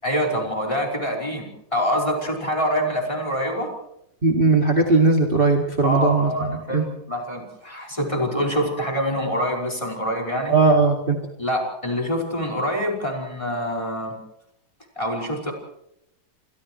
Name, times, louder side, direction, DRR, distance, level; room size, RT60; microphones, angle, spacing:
voice 1, 0.0-3.7 5.8-10.5 11.4-14.2 15.0-15.5, equal, 15° left, 0 dB, 5.5 m, -25 dB
voice 2, 4.2-6.9 10.5-11.2, right 3 dB, 30° right, 2 dB, 2.5 m, -18 dB
29.5 x 27.5 x 3.2 m, 0.77 s
omnidirectional pair, 2.0 m